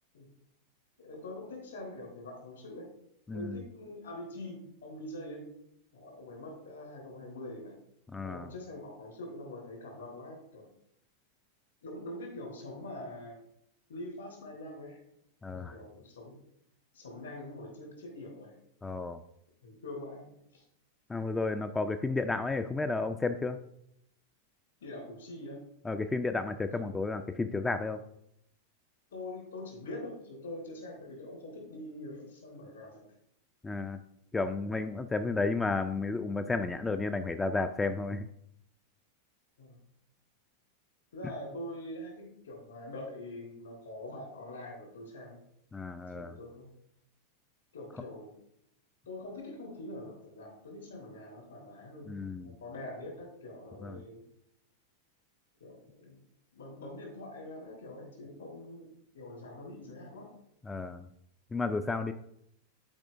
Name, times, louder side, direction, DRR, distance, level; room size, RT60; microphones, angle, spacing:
voice 1, 1.0-2.9 3.3-5.4 5.9-7.7 8.2-10.6 11.8-13.4 13.9-15.0 15.5-16.4 16.9-18.5 19.6-20.3 20.5-20.6 24.8-25.6 26.7-26.8 29.1-33.1 39.6-39.8 41.1-45.4 46.1-46.7 47.7-48.3 49.1-54.2 55.6-56.2 56.5-60.3, left 1 dB, 70° left, 0 dB, 2.8 m, -44 dB
voice 2, 3.3-3.6 8.1-8.5 15.4-15.7 18.8-19.2 21.1-23.6 25.9-28.0 33.6-34.0 34.3-38.3 45.7-46.4 52.1-52.5 53.8-54.0 60.7-61.1 61.5-62.1, left 3 dB, 10° left, 8 dB, 0.3 m, -32 dB
10.5 x 4.8 x 2.5 m, 0.74 s
figure-of-eight pair, 90°, 0 cm